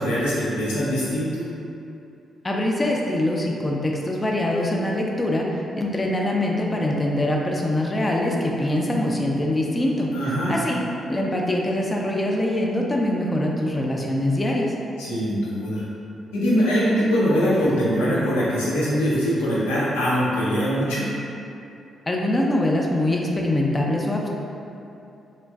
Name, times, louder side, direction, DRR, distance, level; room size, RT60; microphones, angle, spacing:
voice 1, 0.0-1.4 10.1-10.5 15.0-15.8 16.3-21.0, equal, 85° left, -9 dB, 0.6 m, -22 dB
voice 2, 2.4-10.1 10.5-10.8 11.1-14.7 22.1-24.3, left 1 dB, 25° left, -1 dB, 0.5 m, -23 dB
3.0 x 2.4 x 2.3 m, 2.7 s
hypercardioid pair, 40°, 0 cm